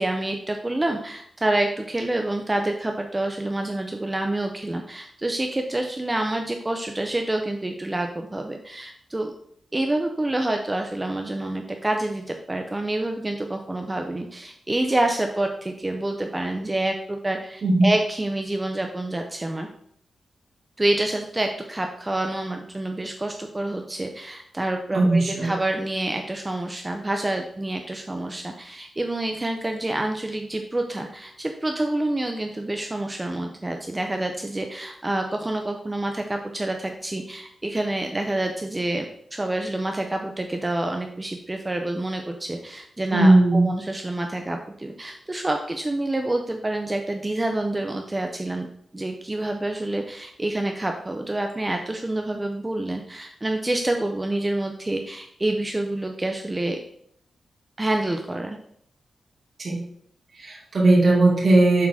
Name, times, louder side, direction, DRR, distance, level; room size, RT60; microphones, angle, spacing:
voice 1, 0.0-9.3 9.7-19.7 20.8-39.1 39.3-48.7 48.9-56.8 57.8-58.6, right 1 dB, 15° right, 4 dB, 0.6 m, -27 dB
voice 2, 17.6-17.9 24.9-25.5 43.1-43.7 59.6-59.8 60.3-61.9, right 2 dB, 50° right, -4 dB, 2.6 m, -18 dB
7.3 x 3.8 x 6.2 m, 0.67 s
wide cardioid pair, 150°, 0 cm